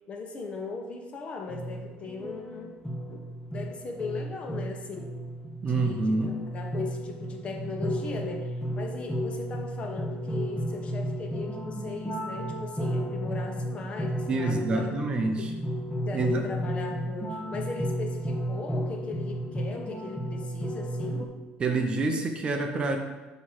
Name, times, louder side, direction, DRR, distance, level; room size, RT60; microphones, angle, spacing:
voice 1, 0.1-2.7 3.1-5.1 5.7-14.9 15.4-15.5 16.1-21.3, left 3 dB, 35° left, 1 dB, 1.2 m, -39 dB
sound 1, 1.5-21.3, equal, 10° left, 1.3 m, -33 dB
voice 2, 5.6-6.4 14.3-15.5 16.1-16.5 21.6-23.0, right 3 dB, 30° right, 4 dB, 0.7 m, -27 dB
9.3 x 3.2 x 6.4 m, 1.2 s
cardioid pair, 135°, 3 cm